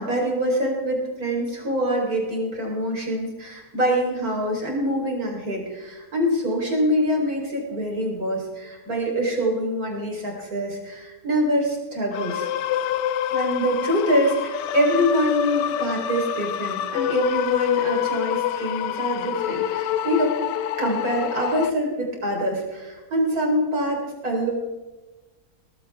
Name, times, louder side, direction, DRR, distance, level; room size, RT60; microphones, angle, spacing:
voice 1, 0.0-12.4 13.3-20.4 20.8-24.5, equal, 55° right, -1 dB, 4.6 m, -25 dB
sound 1, 12.1-21.7, left 11 dB, 80° left, 1.3 m, -26 dB
18.5 x 15.5 x 3.5 m, 1.2 s
omnidirectional pair, 1.9 m